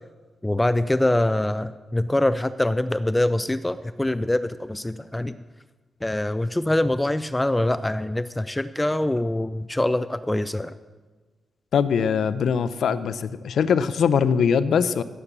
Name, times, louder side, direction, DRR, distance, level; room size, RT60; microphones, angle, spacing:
voice 1, 0.4-5.3 6.0-10.7, left 1 dB, 10° left, 13 dB, 0.4 m, -24 dB
voice 2, 11.7-15.0, left 7 dB, 80° left, 15 dB, 0.6 m, -22 dB
16.5 x 7.3 x 6.8 m, 1.4 s
wide cardioid pair, 120°, 0 cm